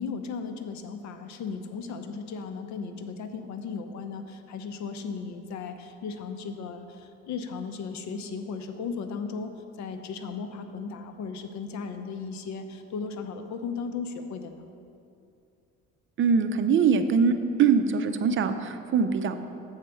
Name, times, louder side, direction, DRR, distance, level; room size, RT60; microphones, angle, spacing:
voice 1, 0.0-14.7, left 5 dB, 60° left, 8 dB, 0.7 m, -36 dB
voice 2, 16.2-17.3 17.6-19.4, right 6 dB, 40° right, 8 dB, 0.6 m, -22 dB
7.2 x 4.4 x 6.9 m, 2.6 s
cardioid pair, 95°, 31 cm